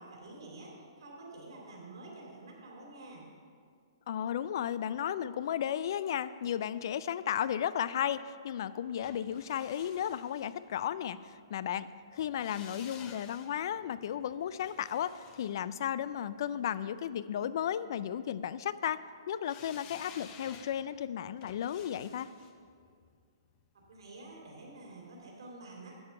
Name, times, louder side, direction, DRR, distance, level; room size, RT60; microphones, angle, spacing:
voice 1, 0.0-3.2 23.9-26.0, right 2 dB, 75° right, -2 dB, 2.6 m, -48 dB
voice 2, 4.1-11.9 12.1-19.0 19.3-22.3, left 9 dB, 60° left, 16 dB, 0.4 m, -34 dB
sound 1, 9.0-11.1 12.2-16.4 19.4-24.4 24.7-24.8, left 7 dB, 30° left, 0.8 m, -54 dB
10.5 x 6.8 x 5.7 m, 2.2 s
hypercardioid pair, 135°, 3 cm